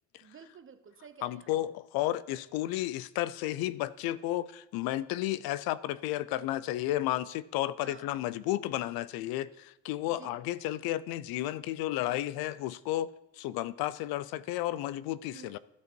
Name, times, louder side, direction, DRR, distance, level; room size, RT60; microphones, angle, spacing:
voice 1, 0.2-1.5 7.8-8.1 10.1-10.4 15.3-15.6, right 6 dB, 35° right, 0.8 m, -51 dB
voice 2, 1.2-15.6, left 14 dB, 80° left, 0.5 m, -32 dB
12.5 x 5.1 x 4.5 m
cardioid pair, 90°, 36 cm